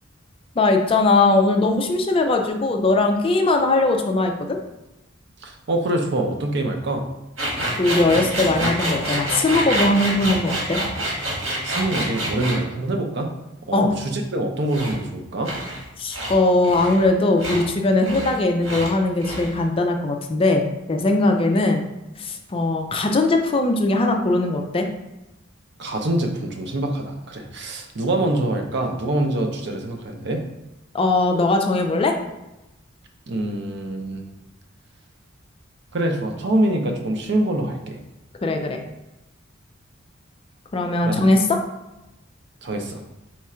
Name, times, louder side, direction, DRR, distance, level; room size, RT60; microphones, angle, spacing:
voice 1, 0.6-4.6 7.8-10.8 13.7-13.9 16.0-21.8 22.2-24.9 30.9-32.2 38.4-38.8 40.7-41.6, left 2 dB, 30° left, 4 dB, 0.4 m, -20 dB
voice 2, 5.4-7.0 11.4-13.3 13.7-15.5 25.8-30.4 33.3-34.3 35.9-38.0 41.0-41.2 42.6-43.0, right 1 dB, 60° right, 3 dB, 0.6 m, -25 dB
sound 1, 7.4-12.6 14.7-14.9 15.4-15.8 16.1-16.3 16.6-17.1 17.4-17.7 18.0-18.4 18.6-18.9 19.2-19.6, right 1 dB, 85° right, 1.5 m, -27 dB
4.3 x 2.4 x 4.3 m, 0.95 s
head